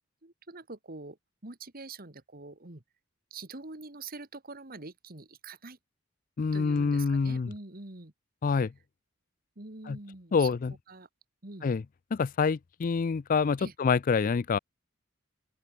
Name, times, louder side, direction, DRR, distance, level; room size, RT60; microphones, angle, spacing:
voice 1, 0.2-1.2 1.4-2.8 3.3-5.8 6.5-8.1 9.6-10.5 10.9-11.1 11.4-11.7 13.6-13.7, right 3 dB, 45° right, 2.0 m, -44 dB
voice 2, 6.4-7.5 8.4-8.7 9.9-10.0 10.3-10.7 11.6-11.8 12.1-14.6, left 5 dB, 40° left, 0.4 m, -26 dB
open air
head